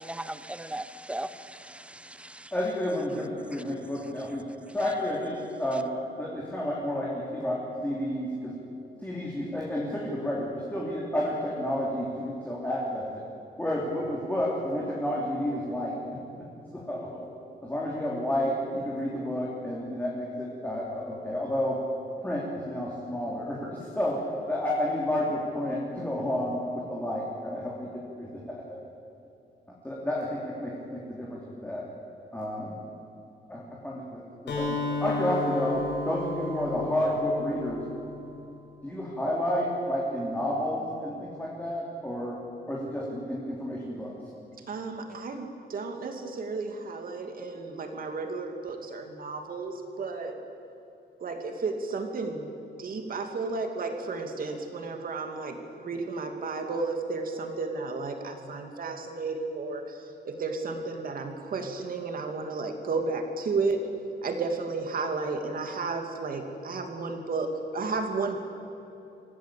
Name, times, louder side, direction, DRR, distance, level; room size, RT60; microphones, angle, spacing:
voice 1, 0.0-2.5, right 1 dB, 5° right, 13 dB, 0.7 m, -38 dB
voice 2, 2.5-4.4 4.7-5.9 6.2-8.5 9.0-13.2 13.6-16.0 16.7-17.2 17.6-21.8 22.2-24.2 24.5-28.6 29.8-31.8 32.3-32.8 33.5-34.7 35.0-37.8 38.8-42.4 42.7-44.1, left 1 dB, 10° left, -4 dB, 3.2 m, -30 dB
Acoustic guitar, 34.5-38.3, left 3 dB, 85° left, 6.8 m, -33 dB
voice 3, 44.7-50.4 51.2-52.5 52.8-63.8 64.2-68.4, right 3 dB, 55° right, 4 dB, 2.8 m, -33 dB
25.5 x 16.5 x 8.6 m, 2.9 s
wide cardioid pair, 175°, 18 cm